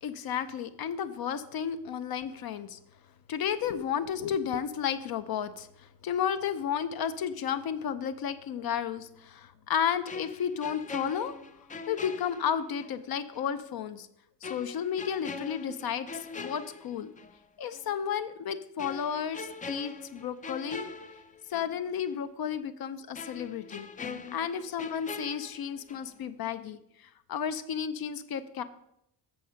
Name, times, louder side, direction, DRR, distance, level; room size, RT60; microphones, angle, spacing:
voice 1, 0.0-2.8 3.3-11.4 11.9-14.1 14.4-17.1 17.6-20.9 21.5-23.9 24.3-28.6, left 8 dB, 55° left, 11 dB, 0.6 m, -32 dB
sound 1, 10.1-13.0 13.3-13.5 14.4-17.4 17.7-17.9 18.8-21.8 22.1-22.2 23.1-26.2 26.4-26.7, left 4 dB, 20° left, 0.4 m, -42 dB
7.8 x 6.5 x 5.7 m, 0.77 s
cardioid pair, 155°, 43 cm